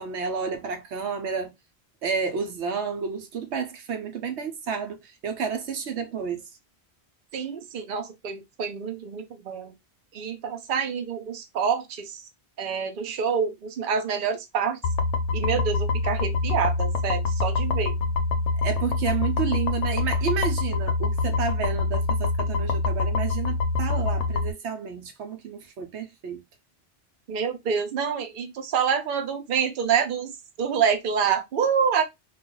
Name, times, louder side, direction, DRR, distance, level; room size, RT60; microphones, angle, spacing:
voice 1, 0.0-1.5 2.0-6.4 18.6-26.4, right 6 dB, 80° right, 1.0 m, -30 dB
voice 2, 7.3-9.7 10.1-12.2 12.6-14.8 15.3-17.9 27.3-30.3 30.6-32.0, right 7 dB, 55° right, 0.8 m, -27 dB
sound 1, 14.8-24.5, left 3 dB, 85° left, 0.9 m, -25 dB
2.4 x 2.3 x 3.7 m
omnidirectional pair, 1.1 m